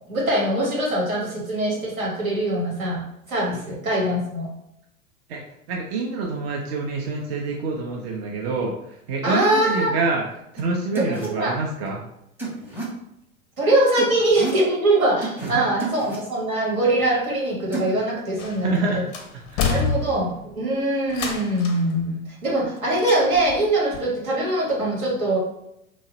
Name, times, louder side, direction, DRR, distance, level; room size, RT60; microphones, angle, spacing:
voice 1, 0.1-3.0 3.3-4.5 9.2-9.9 10.9-11.6 13.6-19.0 19.7-25.4, right 1 dB, 80° right, -3 dB, 1.3 m, -22 dB
voice 2, 5.7-8.7 9.1-10.2 10.5-12.0 15.4-15.6 18.6-19.1 19.5-19.7, right 3 dB, 45° right, 0 dB, 0.6 m, -26 dB
sound 1, 10.6-10.7 11.0-11.3 12.4-12.9 14.0-14.6 15.2-15.5 15.8-16.2 17.7-17.9, right 3 dB, 5° right, 0.7 m, -30 dB
sound 2, 18.4-18.8 19.1-20.5 21.1-21.9 23.0-23.6 23.9-24.0, left 5 dB, 30° left, 0.4 m, -27 dB
2.9 x 2.3 x 2.9 m, 0.79 s
figure-of-eight pair, 90°, 41 cm